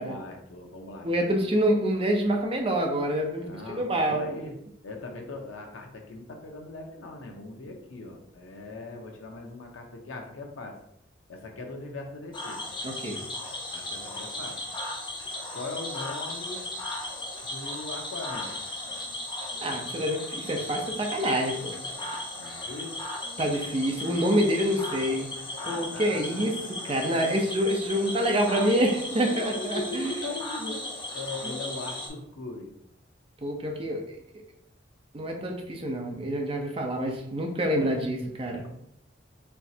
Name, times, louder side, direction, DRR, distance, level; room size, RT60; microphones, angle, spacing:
voice 1, 0.0-1.4 3.4-4.6 4.8-10.8 11.3-12.6 13.7-14.6 15.5-16.7 17.4-18.5 22.4-23.0 24.6-24.9 25.6-26.7 27.9-32.7 37.7-38.0 38.6-38.7, left 2 dB, 85° left, 2 dB, 0.8 m, -40 dB
voice 2, 1.0-4.2 12.8-13.2 19.6-21.8 23.4-25.3 25.6-26.6 26.8-30.1 30.6-30.7 33.4-34.0 35.1-38.6, right 1 dB, 30° right, 2 dB, 0.6 m, -27 dB
Cricket / Frog, 12.3-32.1, left 1 dB, 25° left, 0.8 m, -36 dB
4.4 x 3.2 x 2.7 m, 0.76 s
head